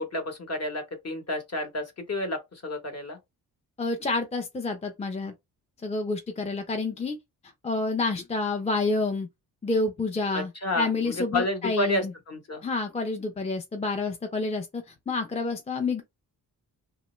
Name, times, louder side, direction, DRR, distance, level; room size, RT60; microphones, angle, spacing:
voice 1, 0.0-3.2 10.3-12.6, left 1 dB, 40° left, 1.0 m, -30 dB
voice 2, 3.8-5.3 5.8-7.2 7.6-9.3 9.6-10.5 10.8-12.1 12.6-16.0, left 3 dB, 20° left, 0.5 m, -28 dB
2.9 x 2.1 x 3.0 m
cardioid pair, 90°, 38 cm